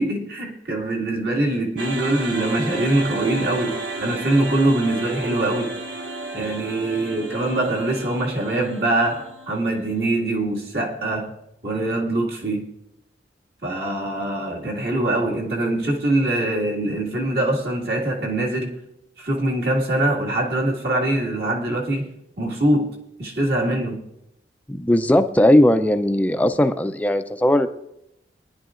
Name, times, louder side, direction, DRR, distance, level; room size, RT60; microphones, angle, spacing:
voice 1, 0.0-5.7 6.3-11.3 11.6-12.7 13.6-18.7 19.2-22.1 22.4-22.9 23.2-24.0, right 1 dB, 60° right, -1 dB, 2.1 m, -23 dB
sound 1, 1.8-10.0, right 2 dB, 90° right, 1.4 m, -33 dB
voice 2, 24.7-27.7, left 1 dB, 10° left, 9 dB, 0.4 m, -18 dB
21.5 x 10.5 x 2.5 m, 0.82 s
head